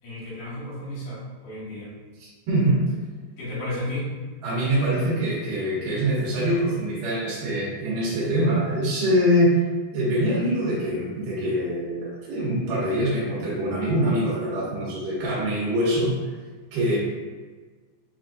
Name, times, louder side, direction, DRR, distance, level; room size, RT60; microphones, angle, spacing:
voice 1, 0.0-1.9 3.4-4.1, left 1 dB, 80° left, -7 dB, 3.4 m, -33 dB
voice 2, 2.5-2.8 4.4-9.6 9.9-16.1 16.7-17.0, equal, 85° right, -7 dB, 3.2 m, -24 dB
7.5 x 2.5 x 2.5 m, 1.4 s
omnidirectional pair, 4.4 m